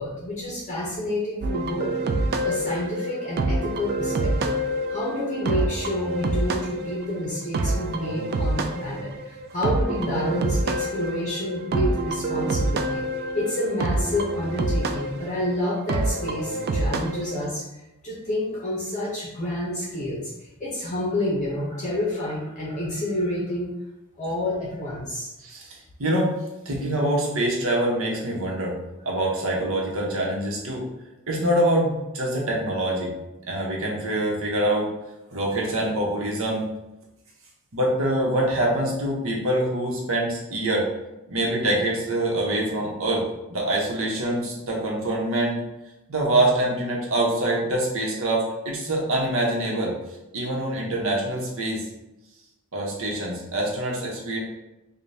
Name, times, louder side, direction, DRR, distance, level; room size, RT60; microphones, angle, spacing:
voice 1, 0.0-1.9 2.4-4.6 4.9-13.0 13.3-23.7 24.2-25.3, left 1 dB, 35° left, -5 dB, 0.7 m, -29 dB
sound 1, 1.4-17.4, right 2 dB, 45° right, 0.3 m, -27 dB
voice 2, 25.4-26.3 26.6-28.7 29.0-30.8 31.3-33.1 33.5-34.9 35.3-36.6 37.7-40.9 41.3-43.2 43.5-45.6 46.1-49.9 50.3-51.9 52.7-54.4, right 1 dB, 65° right, -2 dB, 1.0 m, -25 dB
5.0 x 2.3 x 2.7 m, 0.96 s
head